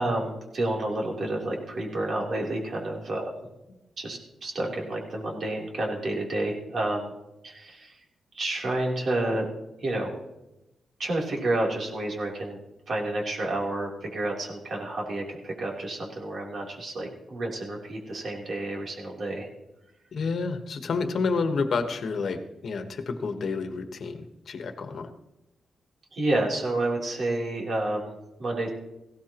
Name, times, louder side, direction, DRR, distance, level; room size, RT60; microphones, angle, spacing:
voice 1, 0.0-3.4 4.0-7.1 7.4-8.0 8.3-9.5 9.8-10.2 11.0-12.6 12.9-19.5 26.1-28.7, right 2 dB, 55° right, -1 dB, 3.5 m, -30 dB
voice 2, 20.1-25.1, left 4 dB, 60° left, 7 dB, 1.3 m, -29 dB
17.5 x 16.0 x 3.0 m, 0.94 s
cardioid pair, 110°, 0 cm